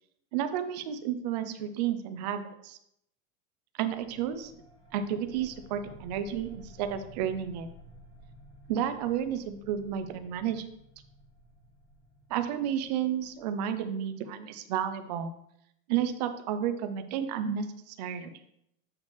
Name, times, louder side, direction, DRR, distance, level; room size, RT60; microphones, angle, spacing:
voice 1, 0.3-2.8 3.8-4.5 4.9-7.7 8.7-10.6 12.3-15.3 15.9-18.3, right 9 dB, 35° right, 9 dB, 0.4 m, -31 dB
sound 1, 3.9-14.1, equal, 40° left, 2.0 m, -54 dB
8.1 x 5.2 x 3.2 m, 0.76 s
supercardioid pair, 175°, 40 cm